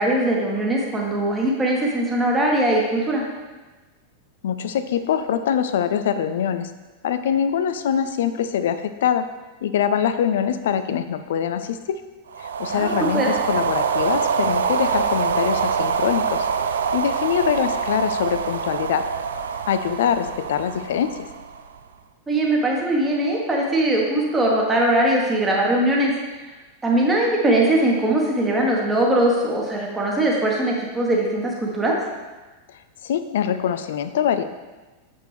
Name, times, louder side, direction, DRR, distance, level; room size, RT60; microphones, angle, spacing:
voice 1, 0.0-3.3 12.7-13.3 22.3-26.1 26.8-32.0, right 1 dB, 15° right, -2 dB, 1.3 m, -21 dB
voice 2, 4.4-6.7 7.0-9.3 9.6-12.0 12.6-16.5 16.9-19.1 19.7-21.3 33.0-34.4, left 8 dB, 60° left, 11 dB, 0.4 m, -23 dB
sound 1, 12.3-21.8, right 6 dB, 65° right, 0.3 m, -25 dB
7.4 x 5.2 x 3.4 m, 1.2 s
figure-of-eight pair, 90°, 0 cm